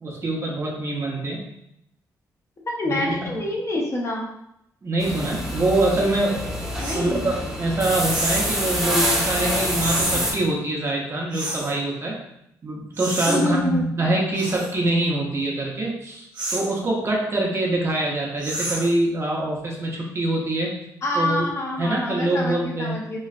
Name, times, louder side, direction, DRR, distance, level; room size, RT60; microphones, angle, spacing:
voice 1, 0.0-1.5 2.9-3.4 4.8-6.7 6.9-12.2 12.6-20.8 21.1-21.5 21.8-23.0, right 2 dB, 35° right, -2 dB, 0.7 m, -24 dB
voice 2, 2.7-4.3 6.8-7.3 13.3-13.8 21.0-23.2, left 1 dB, 40° left, -2 dB, 0.7 m, -26 dB
sound 1, 5.0-10.3, equal, 5° right, 0.9 m, -26 dB
sound 2, 6.8-7.0 8.1-8.6 9.8-10.2 11.3-11.7 12.9-13.4 14.3-14.7 16.3-16.7 18.4-19.0, right 2 dB, 75° right, 0.7 m, -29 dB
3.0 x 2.3 x 2.5 m, 0.78 s
cardioid pair, 70°, 7 cm